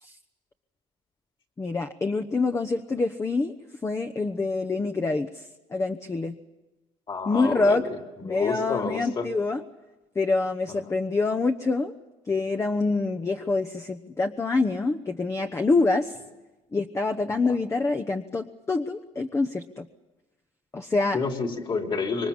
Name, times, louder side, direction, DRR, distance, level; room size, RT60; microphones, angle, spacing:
voice 1, 1.6-3.5 3.8-6.4 7.2-7.8 8.2-9.6 10.1-11.9 12.3-16.1 16.7-19.9 20.7-21.2, left 3 dB, 20° left, 6 dB, 1.1 m, -26 dB
voice 2, 7.1-7.8 8.3-9.3 17.4-17.5 21.1-22.3, left 4 dB, 40° left, 4 dB, 3.6 m, -29 dB
26.5 x 23.0 x 7.3 m, 1.1 s
cardioid pair, 110°, 13 cm